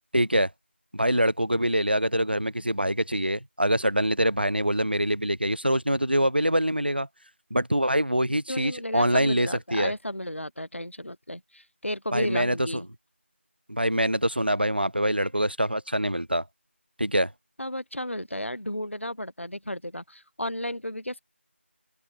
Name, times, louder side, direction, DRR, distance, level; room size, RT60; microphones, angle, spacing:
voice 1, 0.1-0.5 0.9-7.1 7.5-9.9 12.1-12.6 13.7-16.4 17.0-17.3, equal, 50° right, 1.0 m, -24 dB
voice 2, 8.5-12.9 17.6-21.2, left 1 dB, 70° left, 1.6 m, -33 dB
open air
figure-of-eight pair, 180°, 7 cm